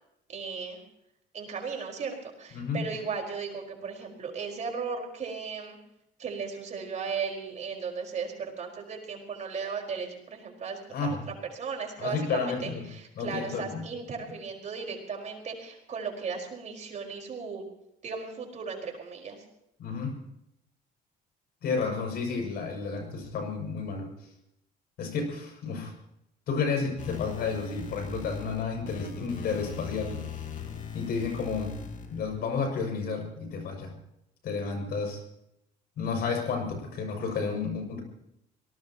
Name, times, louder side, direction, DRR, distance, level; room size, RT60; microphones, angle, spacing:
voice 1, 0.3-0.8 1.3-5.8 6.2-11.1 11.5-17.6 18.0-19.4, right 5 dB, 45° right, 1 dB, 4.7 m, -36 dB
voice 2, 2.5-2.9 10.9-11.3 12.0-12.9 13.2-13.8 19.8-20.2 21.6-24.1 25.0-25.9 26.5-30.2 30.9-31.7 32.1-34.0 34.4-35.2 36.0-38.0, left 5 dB, 65° left, 3 dB, 6.5 m, -31 dB
sound 1, 27.0-32.4, left 7 dB, 50° left, 2.5 m, -40 dB
25.5 x 19.0 x 3.0 m, 0.79 s
cardioid pair, 110°, 17 cm